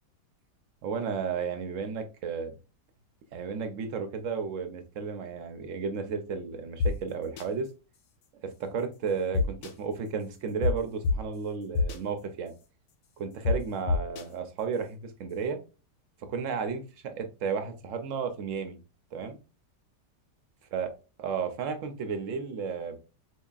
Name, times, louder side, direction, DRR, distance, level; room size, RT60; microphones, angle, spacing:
voice 1, 0.8-2.6 3.3-7.7 8.4-12.5 13.2-15.6 16.3-18.8 19.1-19.4 20.7-20.9 21.2-23.0, right 6 dB, 65° right, 7 dB, 0.8 m, -33 dB
sound 1, 6.8-6.9 7.4-7.5 9.3-9.7 10.6-10.7 11.0-11.1 11.7-12.0 13.4-13.5 13.9-14.2, left 4 dB, 75° left, 1.1 m, -24 dB
4.4 x 2.7 x 2.3 m, 0.32 s
omnidirectional pair, 1.8 m